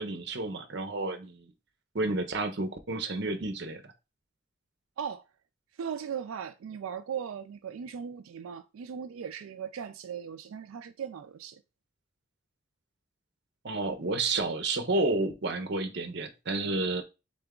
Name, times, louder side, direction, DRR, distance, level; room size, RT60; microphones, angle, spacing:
voice 1, 0.0-1.5 1.9-3.8 13.6-17.0, right 2 dB, 55° right, 0.7 m, -30 dB
voice 2, 5.8-11.6, right 7 dB, 85° right, 0.3 m, -38 dB
3.8 x 3.3 x 3.7 m
head